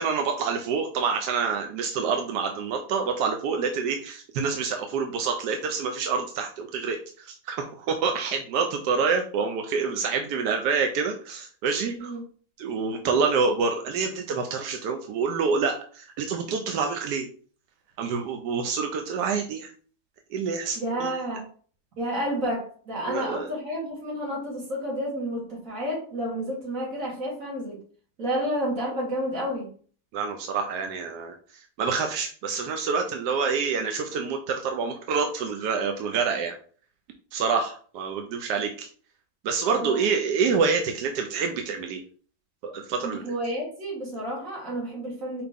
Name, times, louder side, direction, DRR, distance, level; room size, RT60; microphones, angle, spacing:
voice 1, 0.0-12.1 12.6-17.3 18.0-19.7 20.3-21.1 23.0-23.5 30.1-36.6 37.3-38.9 39.4-42.0 42.6-43.2, right 5 dB, 85° right, 1.2 m, -27 dB
voice 2, 20.8-21.5 22.0-27.8 28.2-29.7 39.8-40.0 43.0-45.4, equal, 55° right, 2.2 m, -30 dB
4.9 x 2.9 x 3.5 m
omnidirectional pair, 1.7 m